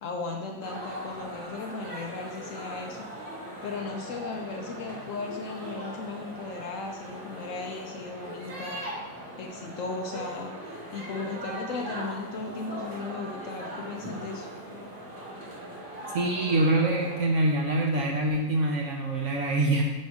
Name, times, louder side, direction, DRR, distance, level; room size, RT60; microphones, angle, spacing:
voice 1, 0.0-3.1 3.6-8.9 9.4-14.5, left 4 dB, 80° left, 2 dB, 0.7 m, -36 dB
sound 1, 0.6-17.2, right 1 dB, 30° right, 1.6 m, -40 dB
voice 2, 16.1-19.8, right 2 dB, 70° right, 0 dB, 0.7 m, -25 dB
5.2 x 4.3 x 4.7 m, 1.2 s
omnidirectional pair, 1.9 m